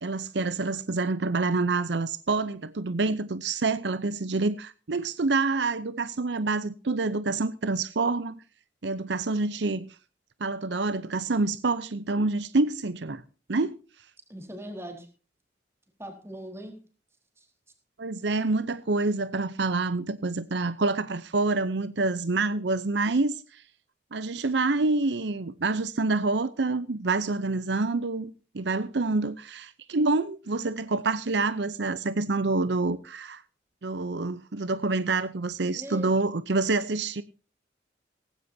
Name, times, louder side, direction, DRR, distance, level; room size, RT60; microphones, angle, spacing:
voice 1, 0.0-8.4 8.8-9.9 10.4-13.2 13.5-13.8 18.0-23.6 24.1-33.4 33.8-37.2, right 3 dB, 70° right, 0.7 m, -27 dB
voice 2, 14.3-15.1 16.0-16.8 17.4-17.5 35.7-36.1, right 1 dB, 15° right, 4.1 m, -40 dB
17.5 x 16.0 x 2.8 m
head